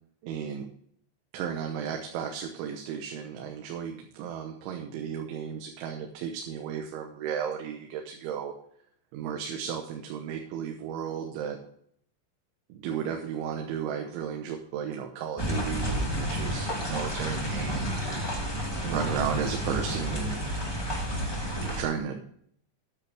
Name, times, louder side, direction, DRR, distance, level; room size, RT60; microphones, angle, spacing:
voice 1, 0.2-0.7 1.3-8.6 9.1-11.6 12.7-18.2 18.8-20.8 21.6-22.2, right 8 dB, 90° right, 3 dB, 3.5 m, -34 dB
sound 1, 15.4-21.8, equal, 35° left, 0.4 m, -31 dB
13.5 x 9.9 x 3.5 m, 0.66 s
omnidirectional pair, 5.2 m